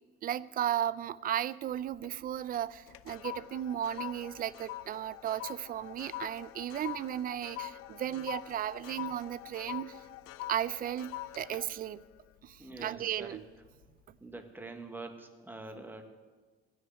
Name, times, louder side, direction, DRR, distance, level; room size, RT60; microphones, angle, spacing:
voice 1, 0.2-9.9 10.5-12.0 12.4-13.4, right 11 dB, 45° right, 18 dB, 0.4 m, -35 dB
sound 1, 1.7-2.2 2.5-13.1 13.5-13.8, left 14 dB, 90° left, 0.5 m, -44 dB
voice 2, 12.6-13.4 14.2-16.1, right 3 dB, 10° right, 5 dB, 1.3 m, -45 dB
15.5 x 6.5 x 9.9 m, 1.4 s
cardioid pair, 140°, 21 cm